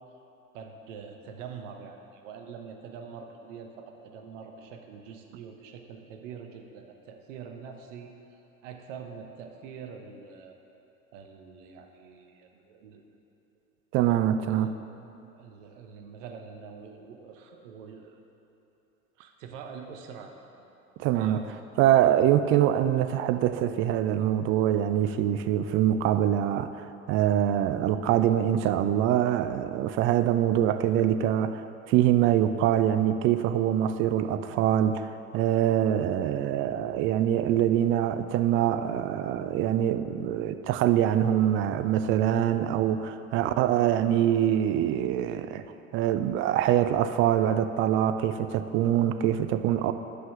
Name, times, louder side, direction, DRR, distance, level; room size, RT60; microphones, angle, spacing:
voice 1, 0.5-10.6 11.1-13.1 14.4-18.2 19.2-20.3 21.1-21.5, right 6 dB, 55° right, 3 dB, 1.2 m, -44 dB
voice 2, 13.9-14.7 21.0-21.4 21.8-45.6 45.9-49.9, right 11 dB, 30° right, 10 dB, 0.4 m, -24 dB
10.0 x 5.5 x 6.9 m, 2.9 s
figure-of-eight pair, 70°, 43 cm